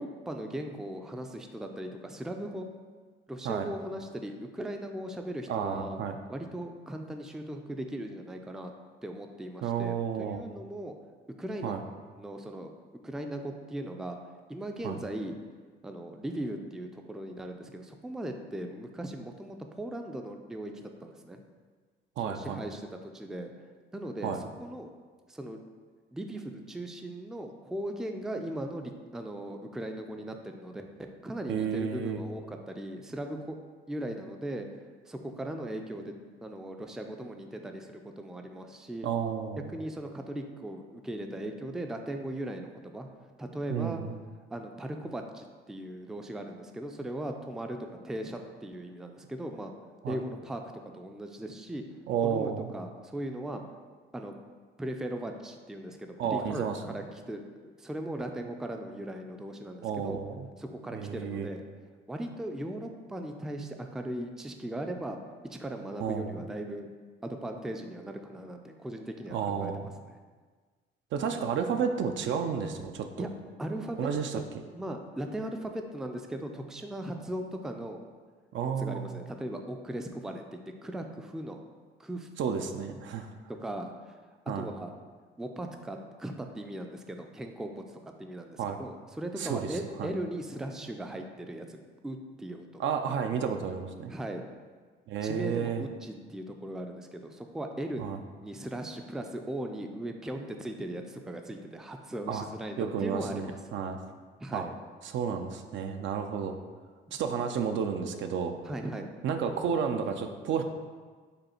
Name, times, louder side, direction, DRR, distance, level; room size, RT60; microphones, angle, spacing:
voice 1, 0.0-2.7 3.3-6.0 6.3-8.7 9.0-11.0 11.4-11.7 12.2-12.7 13.0-14.2 14.5-15.3 15.8-21.4 22.2-23.5 23.9-24.9 25.3-25.6 26.1-33.6 33.9-34.7 35.1-36.2 36.4-39.1 39.7-43.1 43.4-44.0 44.5-47.8 48.0-49.7 50.1-50.6 50.9-51.8 52.2-53.6 54.1-54.3 54.8-60.2 60.6-61.6 62.1-65.2 65.5-66.9 67.2-69.9 73.2-73.3 73.6-74.1 74.7-78.0 78.8-81.6 82.0-82.3 82.9-83.0 83.6-84.2 84.6-84.9 85.4-92.8 94.1-94.4 95.2-98.1 98.4-103.6 104.4-104.7 107.1-107.2 108.7-109.1, right 1 dB, 5° right, 4 dB, 0.3 m, -38 dB
voice 2, 5.5-6.2 9.6-10.4 11.6-11.8 14.8-15.0 22.2-22.6 24.2-24.4 31.5-32.2 39.0-39.7 43.7-44.1 50.0-50.2 52.1-52.7 56.2-56.8 59.8-60.5 60.9-61.5 66.0-66.4 69.3-69.9 71.1-73.3 74.0-74.4 78.5-79.2 82.4-83.3 84.5-84.7 88.6-88.8 89.4-90.1 92.8-94.1 95.1-95.9 98.0-98.2 102.3-102.5 102.8-104.0 104.5-104.7 105.0-106.6 107.1-108.6 109.2-110.6, right 7 dB, 70° right, 6 dB, 0.4 m, -31 dB
5.1 x 2.3 x 4.3 m, 1.5 s
cardioid pair, 90°, 20 cm